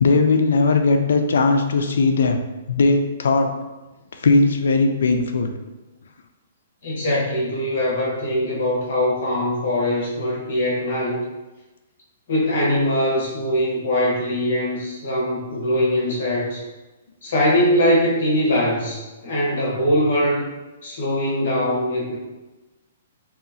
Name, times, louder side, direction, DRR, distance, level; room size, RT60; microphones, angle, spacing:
voice 1, 0.0-2.4 2.7-3.5 4.2-5.5, left 3 dB, 80° left, 5 dB, 0.3 m, -18 dB
voice 2, 6.8-11.2 12.3-16.6 17.2-20.5 20.8-22.1, equal, 60° left, -4 dB, 1.0 m, -22 dB
2.8 x 2.3 x 2.6 m, 1.1 s
hypercardioid pair, 165°, 0 cm